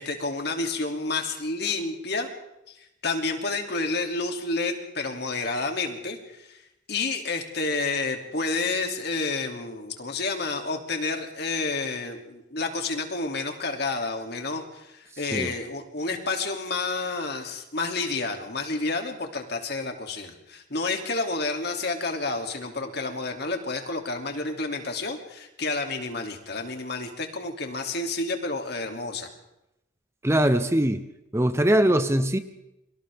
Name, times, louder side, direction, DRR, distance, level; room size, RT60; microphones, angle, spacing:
voice 1, 0.0-2.3 2.7-6.6 6.9-29.3, left 3 dB, 60° left, 3 dB, 2.8 m, -30 dB
voice 2, 30.2-31.0 31.3-32.4, right 1 dB, 15° right, 10 dB, 0.8 m, -21 dB
29.5 x 24.5 x 3.6 m, 0.87 s
head